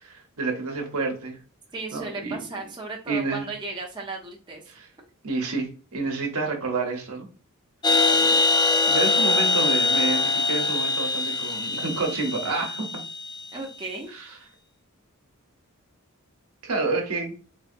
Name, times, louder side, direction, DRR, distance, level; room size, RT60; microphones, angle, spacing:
voice 1, 0.0-1.4 1.9-2.4 3.1-3.5 4.7-4.8 5.2-7.3 8.9-12.9 14.1-14.3 16.6-17.3, right 3 dB, 80° right, 2 dB, 1.0 m, -29 dB
voice 2, 1.7-4.6 7.9-8.4 13.5-14.1, right 3 dB, 20° right, -1 dB, 0.6 m, -36 dB
sound 1, 7.8-13.4, left 3 dB, 20° left, 0.3 m, -23 dB
4.0 x 2.7 x 2.5 m, 0.36 s
head